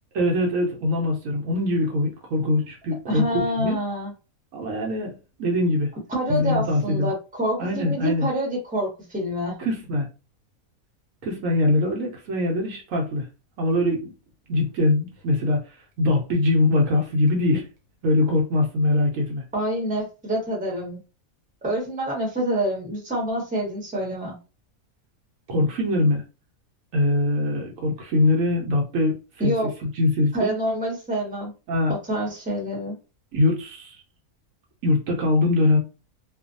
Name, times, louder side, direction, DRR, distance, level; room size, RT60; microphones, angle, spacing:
voice 1, 0.1-3.8 4.5-5.9 6.3-7.1 7.6-8.3 9.6-10.1 11.2-13.3 13.6-14.1 14.5-15.6 16.0-17.7 18.0-19.4 25.5-26.2 26.9-29.2 29.4-30.6 31.7-32.0 33.3-34.0 34.8-35.8, left 2 dB, 70° right, 1.0 m, -22 dB
voice 2, 3.1-4.1 6.1-9.6 19.5-21.0 21.6-24.4 29.4-29.7 30.3-31.5 31.9-32.9, equal, 5° right, 0.8 m, -27 dB
2.5 x 2.3 x 2.5 m
omnidirectional pair, 1.5 m